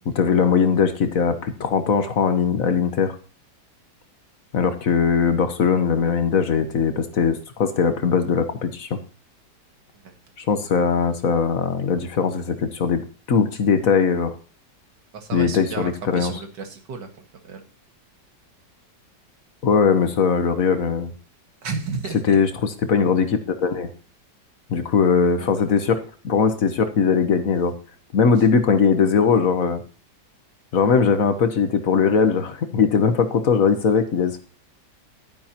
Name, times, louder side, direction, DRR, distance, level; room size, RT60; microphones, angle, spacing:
voice 1, 0.1-3.1 4.5-9.0 10.4-14.3 15.3-16.3 19.6-21.1 22.3-23.9 24.7-27.7 28.1-29.8 30.7-34.4, left 5 dB, 55° left, 9 dB, 1.4 m, -20 dB
voice 2, 15.1-17.6 21.6-22.4 25.4-25.5, right 4 dB, 90° right, 5 dB, 2.4 m, -33 dB
11.5 x 9.4 x 2.9 m, 0.40 s
omnidirectional pair, 1.8 m